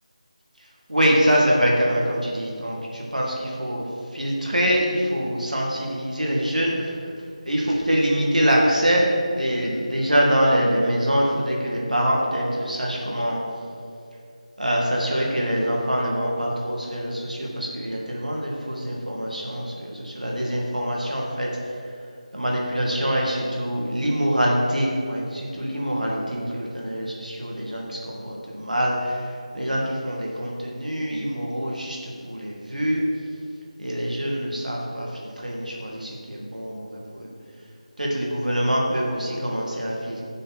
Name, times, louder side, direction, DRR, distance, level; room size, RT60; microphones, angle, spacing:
voice 1, 0.6-13.4 14.6-22.1 22.3-33.1 33.8-37.3 38.0-40.2, equal, 85° right, -2 dB, 2.1 m, -24 dB
11.5 x 6.6 x 4.3 m, 2.4 s
figure-of-eight pair, 165°, 4 cm